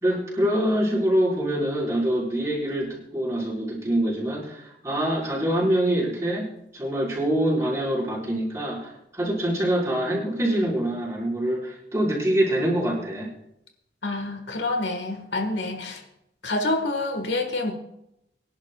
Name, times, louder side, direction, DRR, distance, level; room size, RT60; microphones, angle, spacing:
voice 1, 0.0-13.3, right 1 dB, 15° right, -6 dB, 4.6 m, -25 dB
voice 2, 14.0-16.0 16.4-17.7, left 2 dB, 80° left, 5 dB, 1.6 m, -27 dB
24.0 x 11.0 x 2.3 m, 0.81 s
head